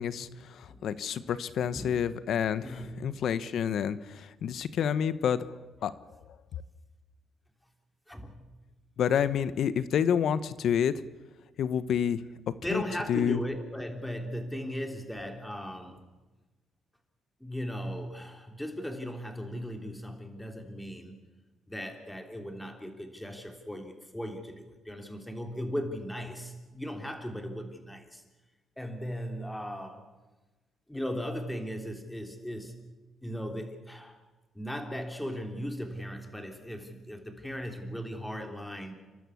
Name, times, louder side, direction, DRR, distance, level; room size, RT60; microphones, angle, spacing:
voice 1, 0.5-5.4 5.8-5.9 9.0-10.9 11.6-12.2 12.7-12.8 13.1-13.4, left 8 dB, 70° left, 14 dB, 1.0 m, -28 dB
voice 2, 1.7-2.0 2.6-3.2 8.1-8.4 9.2-9.3 12.6-16.0 17.4-21.2 21.7-28.2 28.8-30.1 30.9-32.8 33.2-34.2 34.5-38.9, equal, 5° left, 4 dB, 3.4 m, -37 dB
30.0 x 12.5 x 8.5 m, 1.2 s
cardioid pair, 90°, 0 cm